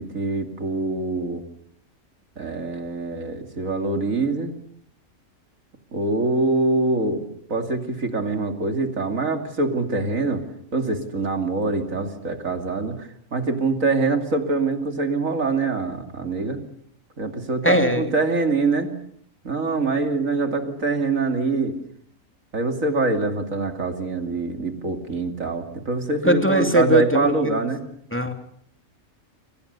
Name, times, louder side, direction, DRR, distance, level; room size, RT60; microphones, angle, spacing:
voice 1, 0.0-1.4 2.4-4.5 5.9-7.2 7.5-10.4 10.7-16.6 17.2-18.9 19.4-21.7 22.5-27.8, right 3 dB, 75° right, 6 dB, 3.1 m, -24 dB
voice 2, 17.6-18.1 26.2-27.6 28.1-28.3, equal, 10° left, 5 dB, 2.6 m, -20 dB
29.5 x 26.0 x 6.9 m, 0.65 s
omnidirectional pair, 1.4 m